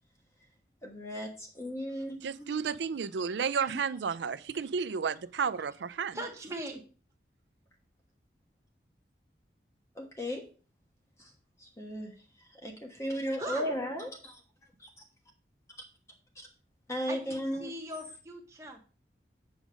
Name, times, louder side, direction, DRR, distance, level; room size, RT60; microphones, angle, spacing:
voice 1, 0.8-2.5 9.9-10.5 11.2-11.3 11.6-14.4 14.8-15.0 16.3-16.5 16.9-17.7, equal, 15° left, 1.2 m, -36 dB
voice 2, 2.2-6.2, right 6 dB, 85° right, 0.4 m, -32 dB
voice 3, 6.1-6.8 13.4-13.7 17.1-18.8, right 1 dB, 15° right, 1.3 m, -40 dB
8.0 x 5.0 x 5.1 m
head